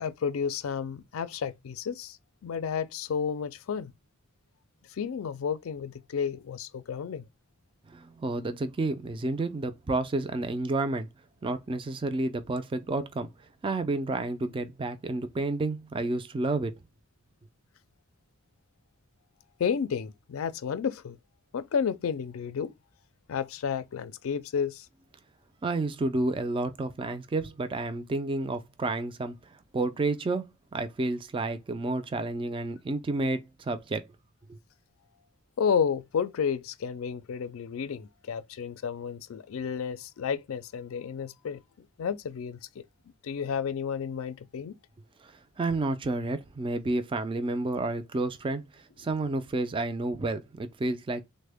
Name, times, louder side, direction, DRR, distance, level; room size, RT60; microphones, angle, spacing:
voice 1, 0.0-2.2 2.4-3.9 4.9-7.2 19.6-21.2 21.5-22.7 23.3-24.9 35.6-42.6 43.2-44.8, left 7 dB, 80° left, 0.4 m, -31 dB
voice 2, 7.9-11.1 11.4-13.3 13.6-16.7 25.6-29.4 29.7-34.1 34.5-34.6 45.2-45.3 45.6-51.2, right 2 dB, 25° right, 0.3 m, -30 dB
3.4 x 2.1 x 3.3 m
head